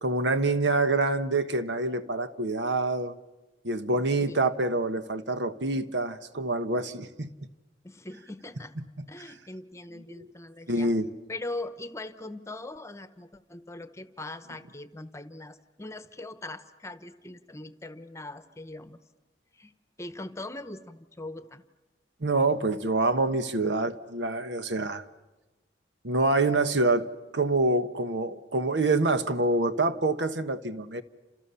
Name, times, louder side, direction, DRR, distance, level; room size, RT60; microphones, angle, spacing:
voice 1, 0.0-3.1 3.6-7.3 9.0-9.1 10.2-10.3 10.7-11.1 22.2-25.0 26.0-27.1 27.3-31.0, right 2 dB, 80° right, 1.3 m, -26 dB
voice 2, 3.9-4.5 7.8-8.7 9.1-10.9 11.3-19.0 19.5-19.7 20.0-21.6, left 2 dB, 15° left, 1.1 m, -41 dB
30.0 x 27.5 x 7.0 m
head